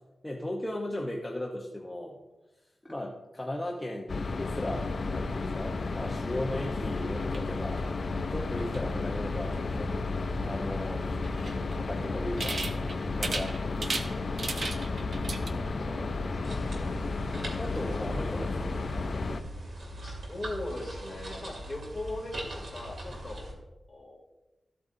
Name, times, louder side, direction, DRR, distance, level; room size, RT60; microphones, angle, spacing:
voice 1, 0.2-2.2 2.8-7.8 8.3-10.1 10.4-11.1 11.7-12.6 13.1-14.0 16.5-16.7 17.6-18.8 23.1-23.2, left 1 dB, 10° left, -1 dB, 0.9 m, -37 dB
sound 1, 4.1-19.4, left 3 dB, 50° left, 0.5 m, -32 dB
sound 2, 7.1-15.5, right 3 dB, 50° right, 0.8 m, -39 dB
voice 2, 15.8-16.7 20.0-23.5 23.9-24.2, left 1 dB, 30° left, -2 dB, 2.8 m, -39 dB
sound 3, 16.4-23.5, right 1 dB, 70° right, 2.5 m, -41 dB
13.5 x 8.7 x 2.7 m, 1.1 s
wide cardioid pair, 140°, 0 cm